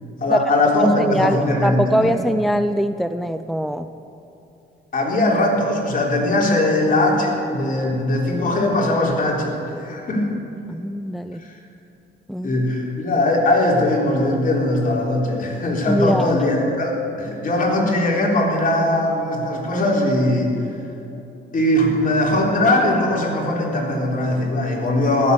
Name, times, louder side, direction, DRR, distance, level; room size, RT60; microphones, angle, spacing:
voice 1, 0.2-2.2 4.9-10.3 11.4-11.5 12.4-20.6 21.5-25.3, left 1 dB, 45° left, -1 dB, 3.7 m, -20 dB
voice 2, 0.8-3.9 10.7-11.4 12.3-12.6 15.9-16.4, equal, ahead, 10 dB, 0.4 m, -22 dB
15.0 x 11.5 x 6.9 m, 3.0 s
cardioid pair, 90°, 20 cm